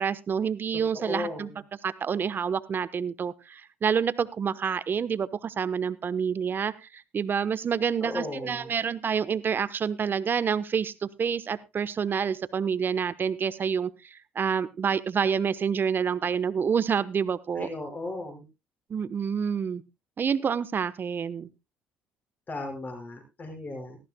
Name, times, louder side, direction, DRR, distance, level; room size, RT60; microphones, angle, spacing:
voice 1, 0.0-1.5 1.8-6.7 7.1-17.7 18.9-19.8 20.2-21.5, right 7 dB, 45° right, 15 dB, 1.0 m, -28 dB
voice 2, 0.9-1.6 8.0-8.7 17.6-18.4 22.5-24.0, left 2 dB, 40° left, 4 dB, 5.3 m, -36 dB
18.5 x 14.0 x 2.2 m, 0.24 s
supercardioid pair, 65°, 5 cm